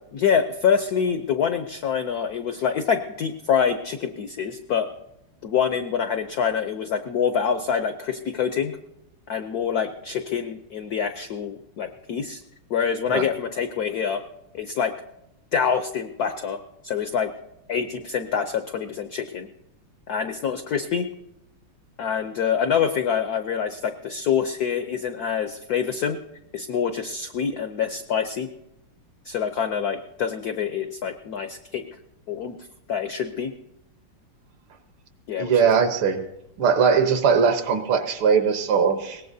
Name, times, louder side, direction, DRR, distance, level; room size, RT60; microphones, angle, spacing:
voice 1, 0.1-4.9 5.4-8.8 9.3-12.4 12.7-14.2 14.5-14.9 15.5-17.3 17.7-19.5 20.1-21.1 22.0-26.2 26.5-28.5 29.2-31.8 32.3-32.6 32.9-33.5 35.3-35.5, left 7 dB, 80° left, 8 dB, 0.8 m, -26 dB
voice 2, 35.4-36.2 36.6-39.2, right 6 dB, 70° right, 7 dB, 1.9 m, -20 dB
21.5 x 18.0 x 2.7 m, 0.88 s
omnidirectional pair, 2.4 m